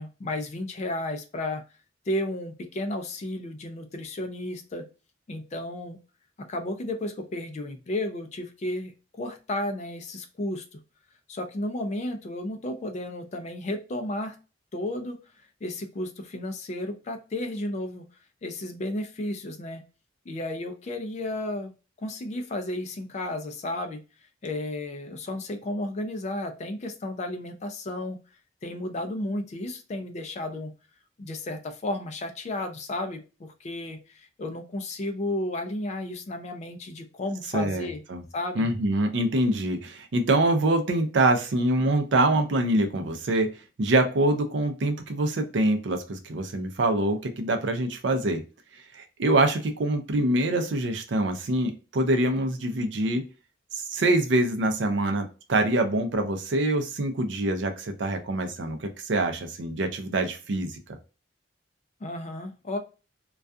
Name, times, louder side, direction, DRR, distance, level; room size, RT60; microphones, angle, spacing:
voice 1, 0.0-1.6 2.1-4.8 5.3-6.0 6.4-10.8 11.3-14.4 14.7-15.2 15.6-18.0 18.4-19.8 20.3-21.7 22.0-24.0 24.4-28.2 28.6-30.7 31.2-38.0 38.3-38.7 62.0-62.8, left 1 dB, 35° left, 7 dB, 0.4 m, -33 dB
voice 2, 37.5-38.2 38.6-43.5 43.8-48.4 48.9-53.2 53.7-61.0, right 2 dB, 65° right, 6 dB, 0.5 m, -25 dB
2.3 x 2.3 x 2.5 m, 0.32 s
head